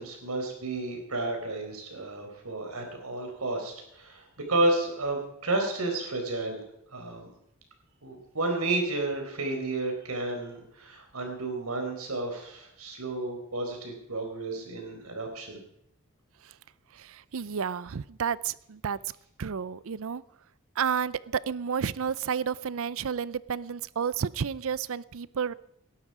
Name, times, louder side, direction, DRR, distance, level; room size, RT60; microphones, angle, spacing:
voice 1, 0.0-6.6 6.9-7.3 8.0-15.6, right 2 dB, 90° right, 3 dB, 4.5 m, -31 dB
voice 2, 16.9-19.0 19.4-20.2 20.8-25.5, right 7 dB, 65° right, 20 dB, 0.5 m, -31 dB
19.0 x 12.0 x 4.9 m, 0.75 s
head